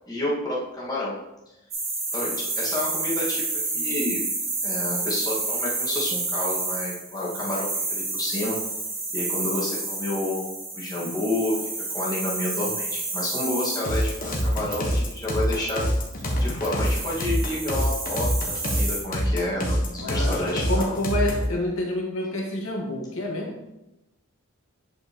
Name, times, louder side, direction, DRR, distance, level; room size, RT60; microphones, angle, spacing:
voice 1, 0.1-1.2 2.1-3.4 3.7-4.2 4.6-8.6 9.1-10.5 10.7-11.6 11.9-15.8 16.4-21.0, left 1 dB, 15° left, -7 dB, 1.8 m, -29 dB
sound 1, 1.7-19.0, right 3 dB, 30° right, 1.5 m, -30 dB
sound 2, 13.8-21.5, equal, 40° left, 1.2 m, -25 dB
voice 2, 20.0-23.6, left 1 dB, 65° left, -1 dB, 1.7 m, -28 dB
8.9 x 5.4 x 3.0 m, 0.96 s
head